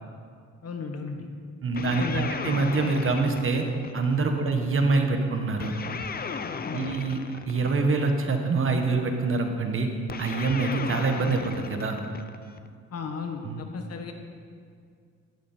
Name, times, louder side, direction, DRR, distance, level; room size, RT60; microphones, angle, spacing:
voice 1, 0.6-1.3 1.8-2.5 4.4-4.5 6.6-7.0 12.9-14.1, left 5 dB, 55° left, 4 dB, 1.6 m, -35 dB
voice 2, 1.6-3.7 3.9-5.7 6.7-7.2 7.5-9.9 10.2-12.0 13.4-13.6, right 3 dB, 45° right, 4 dB, 1.6 m, -25 dB
sound 1, 1.7-4.4 5.6-8.2 10.1-12.7, left 5 dB, 30° left, 0.7 m, -36 dB
14.5 x 11.5 x 4.6 m, 2.1 s
cardioid pair, 90°, 30 cm